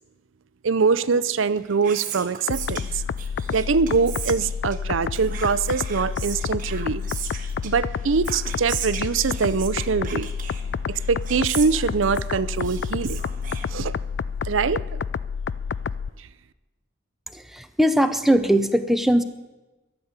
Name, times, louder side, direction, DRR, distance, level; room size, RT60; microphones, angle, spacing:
voice 1, 0.6-3.0 3.5-7.0 7.6-10.3 10.9-13.2 13.7-13.9 14.4-15.0, right 5 dB, 85° right, 16 dB, 0.5 m, -23 dB
Whispering, 1.4-14.2, right 8 dB, 45° right, 1.4 m, -38 dB
sound 1, 2.5-16.1, left 6 dB, 65° left, 0.3 m, -29 dB
voice 2, 17.3-19.2, equal, ahead, 8 dB, 0.6 m, -20 dB
12.5 x 7.0 x 9.5 m, 1.1 s
head